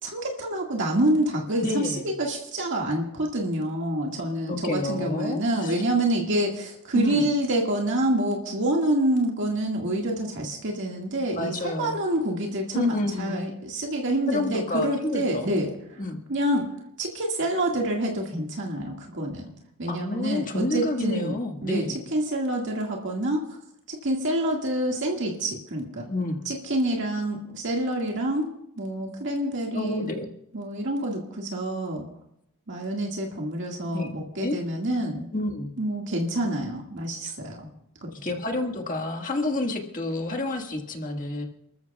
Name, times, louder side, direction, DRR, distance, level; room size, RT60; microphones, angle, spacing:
voice 1, 0.0-15.7 16.3-16.7 17.0-19.5 19.8-21.4 21.6-21.9 22.1-23.5 23.9-26.0 26.5-30.1 30.5-32.1 32.7-35.3 35.8-37.7 38.0-38.1, right 1 dB, 55° right, 0 dB, 1.9 m, -27 dB
voice 2, 1.6-2.1 4.5-5.8 6.9-7.3 11.3-12.0 12.7-13.4 14.3-15.5 16.0-16.2 19.9-22.0 26.0-26.4 29.7-30.3 33.9-34.5 35.3-35.7 38.1-41.5, left 2 dB, 35° left, 3 dB, 1.7 m, -29 dB
30.0 x 13.5 x 2.4 m, 0.79 s
head